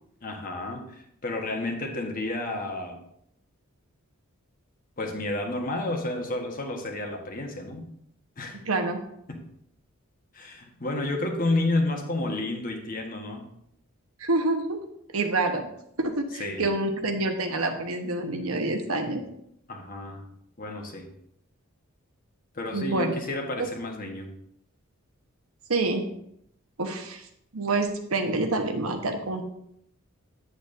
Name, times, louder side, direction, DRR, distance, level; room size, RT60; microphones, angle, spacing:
voice 1, 0.2-3.0 5.0-7.9 8.4-8.6 9.3-9.4 10.3-13.5 16.4-16.7 19.7-20.2 20.6-21.1 22.5-24.3, left 2 dB, 40° left, 2 dB, 1.2 m, -31 dB
voice 2, 8.6-9.0 14.2-14.8 15.1-15.6 16.0-19.2 22.7-23.2 23.6-23.7 25.7-26.1 26.8-27.2 27.5-29.4, right 2 dB, 75° right, 4 dB, 1.1 m, -27 dB
8.6 x 7.9 x 2.6 m, 0.74 s
head